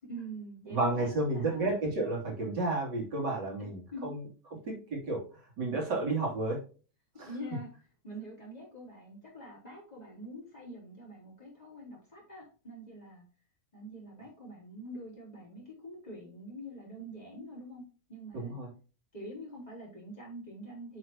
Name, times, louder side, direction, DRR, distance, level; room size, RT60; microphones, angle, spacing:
voice 1, 0.0-1.7 3.6-4.1 7.3-7.7 8.0-13.2 13.7-17.8 18.1-18.5 19.1-21.0, right 1 dB, 20° left, -5 dB, 4.1 m, -45 dB
voice 2, 0.7-4.2 4.5-5.2 5.6-6.6 7.2-7.3 18.3-18.7, right 2 dB, 85° right, -2 dB, 3.6 m, -31 dB
7.6 x 6.4 x 2.9 m, 0.35 s
omnidirectional pair, 1.8 m